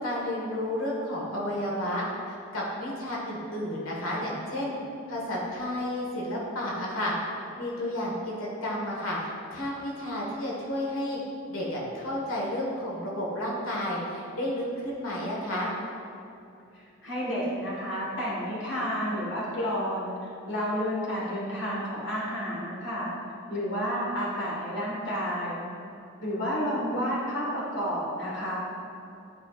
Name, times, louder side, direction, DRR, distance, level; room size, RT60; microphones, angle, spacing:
voice 1, 0.0-2.1 2.5-4.7 5.1-7.1 7.6-9.2 9.5-11.2 11.5-15.7, left 1 dB, 90° left, -4 dB, 1.5 m, -31 dB
voice 2, 16.7-20.1 20.5-23.1 23.5-25.6 26.2-28.6, equal, 60° left, -6 dB, 1.5 m, -30 dB
11.0 x 5.1 x 2.4 m, 2.7 s
head